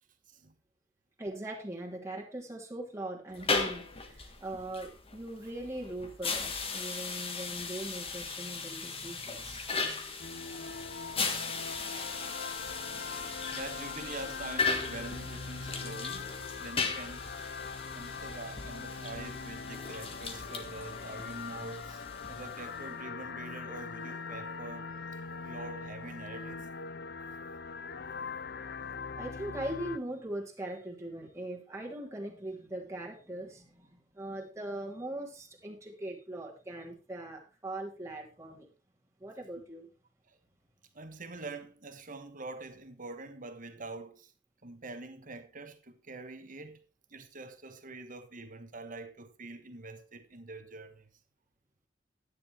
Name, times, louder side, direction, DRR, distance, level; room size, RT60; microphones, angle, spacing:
voice 1, 1.2-9.7 12.4-12.5 29.2-38.7 39.2-39.9, right 1 dB, 15° right, 2.8 m, -41 dB
sound 1, 3.3-22.9, left 4 dB, 30° left, 1.6 m, -37 dB
sound 2, 10.2-30.0, left 5 dB, 55° left, 0.6 m, -42 dB
voice 2, 13.2-16.3 16.6-17.5 17.9-24.9 25.4-26.7 39.6-39.7 40.3-40.4 40.9-44.3 44.6-46.8 47.1-51.1, right 2 dB, 45° right, 1.4 m, -45 dB
12.0 x 10.0 x 3.3 m
head